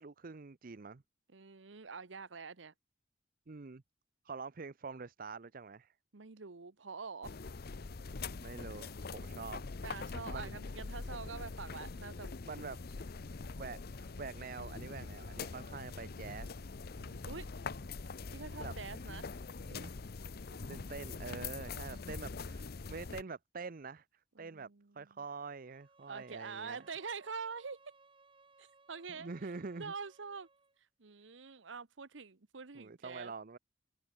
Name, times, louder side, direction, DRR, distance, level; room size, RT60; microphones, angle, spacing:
voice 1, 0.0-1.0 3.5-3.8 4.2-5.9 8.4-9.6 10.3-10.5 12.4-12.8 13.6-16.6 18.6-18.7 19.6-19.9 20.7-24.1 24.4-24.7 24.9-26.8 29.2-29.9 32.7-33.6, right 4 dB, 50° right, 0.7 m, -45 dB
voice 2, 1.3-2.7 6.1-7.4 9.8-12.3 16.9-17.5 18.3-19.3 24.4-25.2 26.1-27.8 28.6-29.3 29.8-30.5 31.0-33.3, right 5 dB, 80° right, 1.0 m, -45 dB
sound 1, 7.2-23.2, left 4 dB, 55° left, 0.7 m, -43 dB
Bowed string instrument, 25.6-30.8, right 3 dB, 30° right, 5.4 m, -64 dB
head